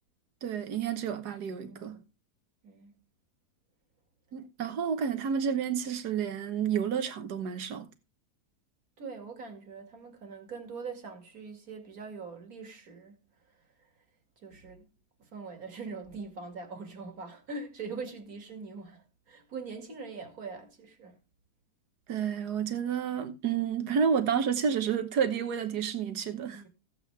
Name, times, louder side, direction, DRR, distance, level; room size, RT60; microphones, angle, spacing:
voice 1, 0.4-1.9 4.3-7.9 22.1-26.6, right 7 dB, 80° right, 1.8 m, -30 dB
voice 2, 1.6-2.1 2.6-3.0 9.0-13.2 14.4-14.9 15.2-21.2 26.5-26.7, right 4 dB, 60° right, 2.6 m, -42 dB
15.0 x 9.0 x 3.3 m
omnidirectional pair, 1.7 m